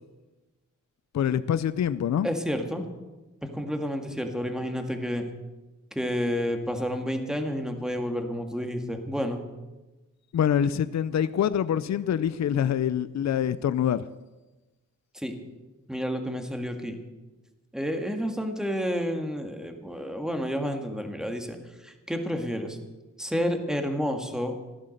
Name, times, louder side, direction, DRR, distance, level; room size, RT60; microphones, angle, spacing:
voice 1, 1.1-2.3 10.3-14.0, left 9 dB, 60° left, 0.5 m, -25 dB
voice 2, 2.2-2.8 3.4-5.3 5.9-9.4 15.1-15.3 15.9-17.0 17.7-21.6 21.8-22.8 23.2-24.6, equal, ahead, 2.0 m, -30 dB
15.0 x 11.5 x 6.6 m
cardioid pair, 85°, 31 cm